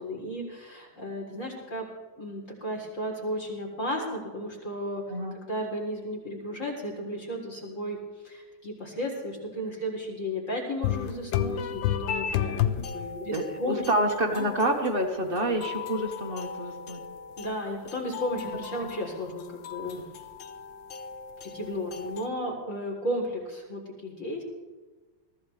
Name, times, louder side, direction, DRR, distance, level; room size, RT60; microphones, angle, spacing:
voice 1, 0.0-1.9 2.2-5.0 5.3-8.0 8.2-13.8 14.3-14.5 15.2-15.6 17.4-20.1 21.4-24.4, equal, 35° left, -1 dB, 3.9 m, -34 dB
sound 1, 10.8-22.3, left 9 dB, 70° left, 1.4 m, -34 dB
voice 2, 13.3-17.0, right 1 dB, 30° right, 3 dB, 1.6 m, -28 dB
22.0 x 15.0 x 3.3 m, 1.2 s
omnidirectional pair, 2.3 m